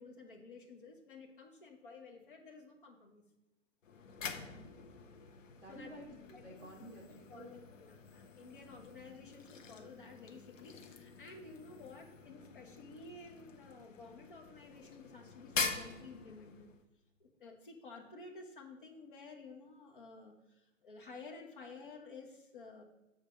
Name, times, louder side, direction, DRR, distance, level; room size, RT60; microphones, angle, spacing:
voice 1, 0.0-3.2 5.7-6.0 6.3-6.9 7.3-16.7 17.2-22.8, left 3 dB, 45° left, 2 dB, 1.3 m, -53 dB
sound 1, 3.8-16.8, left 5 dB, 90° left, 1.2 m, -45 dB
voice 2, 4.3-4.7 5.6-7.5, right 1 dB, 10° left, -8 dB, 1.4 m, -52 dB
7.2 x 4.1 x 6.2 m, 0.95 s
hypercardioid pair, 180°, 37 cm